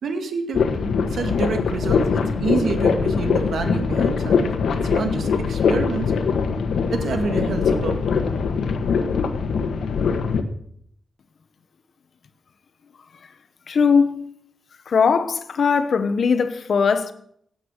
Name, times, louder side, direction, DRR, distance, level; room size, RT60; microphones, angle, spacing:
voice 1, 0.0-4.5 4.9-6.1 6.9-8.0, right 5 dB, 70° right, 2.2 m, -28 dB
sound 1, 0.5-10.4, left 5 dB, 80° left, 1.4 m, -22 dB
voice 2, 13.7-14.3 14.9-17.1, left 5 dB, 55° left, 1.1 m, -19 dB
16.5 x 9.2 x 6.5 m
wide cardioid pair, 160°, 0 cm